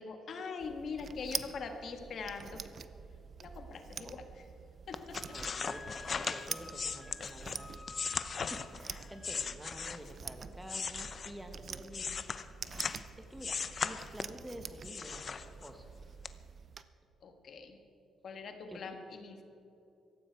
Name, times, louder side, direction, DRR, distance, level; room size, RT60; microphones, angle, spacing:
voice 1, 0.0-2.6 3.4-4.4 4.9-5.4 17.2-17.8 18.2-19.4, left 4 dB, 60° left, 5 dB, 1.7 m, -43 dB
sound 1, 0.6-16.8, right 6 dB, 45° right, 0.6 m, -46 dB
sound 2, 4.9-10.2 10.6-13.1 13.4-14.4 14.8-15.9 16.2-16.3, left 5 dB, 45° left, 0.7 m, -38 dB
Wind instrument woodwind instrument, 5.2-9.5, left 2 dB, 20° left, 1.2 m, -52 dB
voice 2, 5.3-7.8 8.0-12.3 13.3-15.9 18.7-19.0, equal, 10° right, 6 dB, 1.5 m, -49 dB
17.5 x 14.5 x 4.7 m, 2.8 s
cardioid pair, 90°, 0 cm